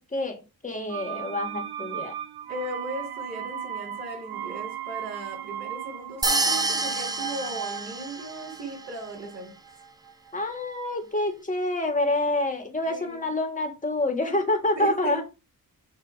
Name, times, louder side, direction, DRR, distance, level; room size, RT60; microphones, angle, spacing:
voice 1, 0.0-2.1 10.3-15.2, left 2 dB, 20° left, 5 dB, 1.6 m, -27 dB
sound 1, 0.9-10.6 10.9-11.0, right 9 dB, 85° right, 0.7 m, -37 dB
voice 2, 2.5-9.5 12.8-13.4 14.8-15.2, right 2 dB, 45° right, -6 dB, 3.8 m, -37 dB
sound 2, 6.2-8.5, right 2 dB, 10° right, 0.5 m, -27 dB
6.6 x 2.9 x 5.1 m, 0.27 s
wide cardioid pair, 110°, 38 cm